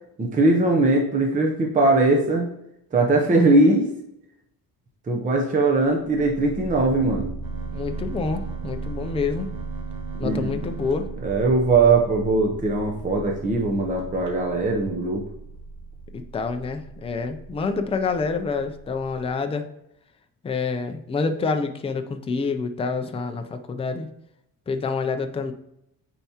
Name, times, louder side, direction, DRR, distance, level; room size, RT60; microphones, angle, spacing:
voice 1, 0.2-2.5 2.9-3.9 5.1-7.3 10.2-10.5 11.2-15.2, right 2 dB, 20° right, 1 dB, 0.7 m, -20 dB
sound 1, 5.9-19.3, right 3 dB, 30° left, 1.5 m, -37 dB
sound 2, 7.4-12.5 13.0-13.1 13.4-13.6 14.0-14.3, right 6 dB, 85° right, 1.6 m, -41 dB
voice 2, 7.7-9.5 10.2-11.1 16.1-19.7 20.4-24.1 24.7-25.5, left 4 dB, 15° left, 6 dB, 0.3 m, -27 dB
8.9 x 4.6 x 2.8 m, 0.80 s
wide cardioid pair, 180°, 38 cm